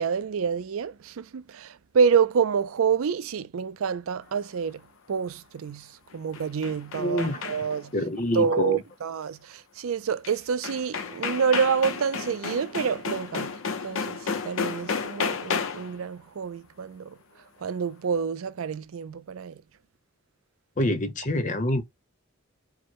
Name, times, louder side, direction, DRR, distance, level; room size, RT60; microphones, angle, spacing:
voice 1, 0.0-4.8 5.1-7.9 8.3-13.6 13.8-17.2 17.6-19.6, right 6 dB, 80° right, 0.4 m, -27 dB
sound 1, 6.1-7.9 10.2-10.3 10.6-16.0, left 5 dB, 70° left, 0.7 m, -32 dB
voice 2, 6.9-7.4 7.9-8.8 20.8-21.8, left 1 dB, 40° left, 0.8 m, -26 dB
4.6 x 2.1 x 4.4 m
head